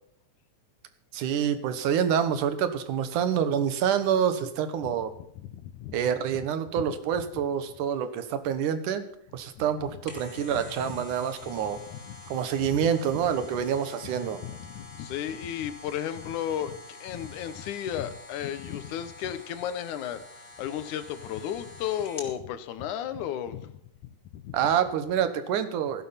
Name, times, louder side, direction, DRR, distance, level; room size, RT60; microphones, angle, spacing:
voice 1, 1.1-5.1 5.9-9.0 9.3-11.8 12.3-14.4 24.5-26.0, right 8 dB, 80° right, 11 dB, 2.8 m, -27 dB
voice 2, 4.8-6.0 6.3-6.4 6.8-7.4 9.6-11.1 11.4-11.6 11.9-13.6 14.0-14.2 14.4-23.8 24.3-24.6 25.2-25.3, left 10 dB, 80° left, 13 dB, 2.5 m, -35 dB
sound 1, 9.8-22.4 22.8-22.9, left 2 dB, 30° left, 3.4 m, -47 dB
15.5 x 11.0 x 5.8 m, 0.70 s
omnidirectional pair, 3.5 m